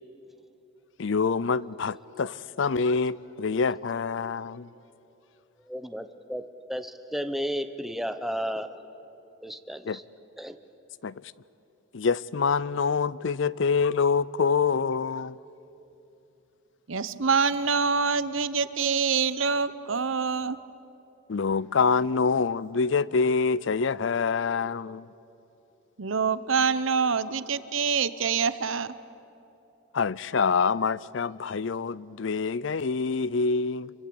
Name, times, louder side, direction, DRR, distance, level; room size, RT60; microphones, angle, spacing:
voice 1, 1.0-4.7 9.9-10.0 11.0-11.2 11.9-15.4 21.3-25.1 29.9-33.9, left 5 dB, 65° left, 0.5 m, -26 dB
voice 2, 5.7-8.8 9.4-10.0 10.4-10.6, equal, ahead, 0.9 m, -33 dB
voice 3, 16.9-20.6 26.0-28.9, right 5 dB, 75° right, 0.9 m, -25 dB
27.0 x 23.0 x 8.7 m
head